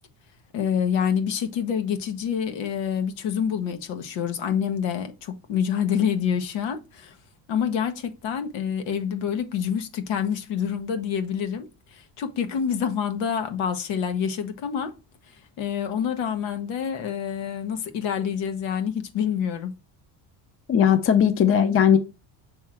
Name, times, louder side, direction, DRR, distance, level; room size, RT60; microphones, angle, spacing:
voice 1, 0.5-7.2 7.5-15.0 15.6-19.7, left 8 dB, 80° left, 1.3 m, -27 dB
voice 2, 20.7-22.0, left 8 dB, 30° left, 0.7 m, -18 dB
6.2 x 3.5 x 4.4 m
cardioid pair, 120°, 47 cm